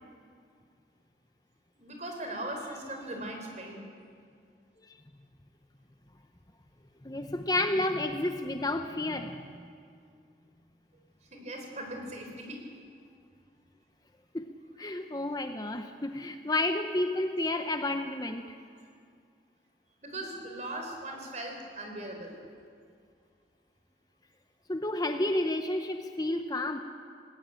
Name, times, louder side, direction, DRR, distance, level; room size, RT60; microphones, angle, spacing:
voice 1, 1.8-3.8 11.3-12.6 20.0-22.4, right 1 dB, 40° right, 3 dB, 4.1 m, -39 dB
voice 2, 7.0-9.5 14.3-14.4 14.8-18.6 24.7-26.8, left 2 dB, 20° left, 7 dB, 0.8 m, -31 dB
20.5 x 18.0 x 9.0 m, 2.2 s
head